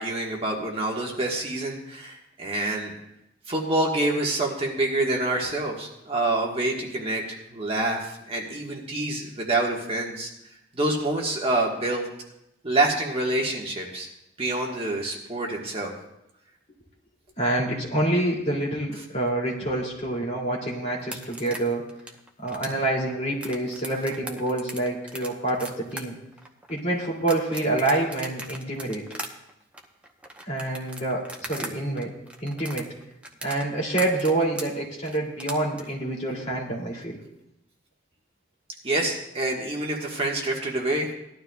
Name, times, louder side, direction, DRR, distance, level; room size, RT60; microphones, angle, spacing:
voice 1, 0.0-2.9 3.5-10.3 10.7-12.1 12.6-14.1 14.4-15.9 38.8-41.1, right 2 dB, 30° right, -1 dB, 1.4 m, -27 dB
voice 2, 17.4-21.9 22.4-26.1 26.7-29.0 30.4-32.1 32.4-32.9 33.4-37.2, right 2 dB, 35° left, -3 dB, 2.6 m, -27 dB
sound 1, 21.0-31.7 32.0-35.8, right 1 dB, 5° right, 0.9 m, -38 dB
18.5 x 12.0 x 2.3 m, 0.84 s
head